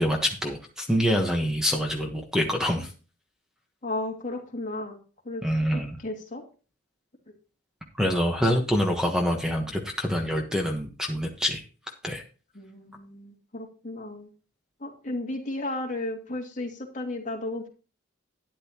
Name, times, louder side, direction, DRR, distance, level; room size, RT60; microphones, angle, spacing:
voice 1, 0.0-2.9 5.4-6.0 8.0-11.6 12.0-12.2, equal, 5° right, 2 dB, 1.2 m, -26 dB
voice 2, 3.8-5.0 5.2-5.4 5.7-6.4 7.3-7.4 12.5-14.3 14.8-17.7, left 2 dB, 40° left, 0 dB, 2.4 m, -34 dB
12.0 x 10.5 x 3.0 m, 0.35 s
head